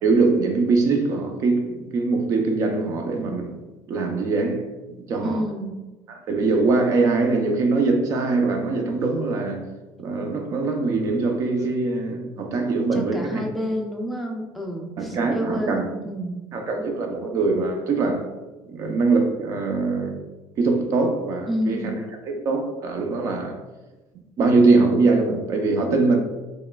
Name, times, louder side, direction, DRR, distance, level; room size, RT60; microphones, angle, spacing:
voice 1, 0.0-3.6 3.9-4.6 4.9-5.4 6.1-9.7 10.0-13.4 15.0-15.9 16.5-18.3 18.7-20.2 20.6-21.9 22.3-23.6 24.4-26.2, right 3 dB, 45° right, 0.6 m, -22 dB
voice 2, 5.2-5.8 12.9-16.4 21.5-21.9, equal, ahead, 0.5 m, -29 dB
4.8 x 3.2 x 2.3 m
cardioid pair, 140°, 7 cm